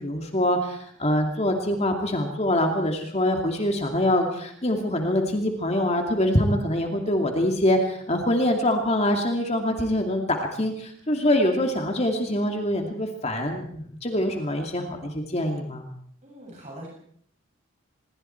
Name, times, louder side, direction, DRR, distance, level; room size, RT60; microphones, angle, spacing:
voice 1, 0.0-15.9, left 1 dB, 30° left, 3 dB, 2.5 m, -24 dB
voice 2, 16.2-16.9, right 1 dB, 35° right, -3 dB, 7.2 m, -42 dB
25.5 x 22.5 x 4.6 m, 0.62 s
head